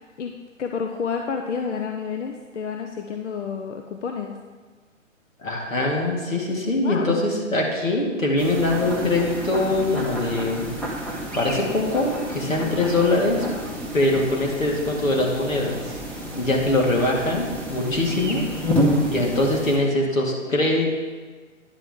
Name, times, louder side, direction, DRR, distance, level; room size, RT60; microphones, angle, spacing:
voice 1, 0.6-4.3 6.8-7.2, left 6 dB, 65° left, 4 dB, 0.7 m, -29 dB
voice 2, 5.4-10.7 11.4-13.5 13.9-15.9 16.4-18.5 19.1-20.9, left 2 dB, 85° left, -2 dB, 2.1 m, -22 dB
sound 1, 8.4-19.8, equal, 5° left, 0.8 m, -29 dB
9.9 x 7.5 x 3.6 m, 1.4 s
figure-of-eight pair, 125°, 39 cm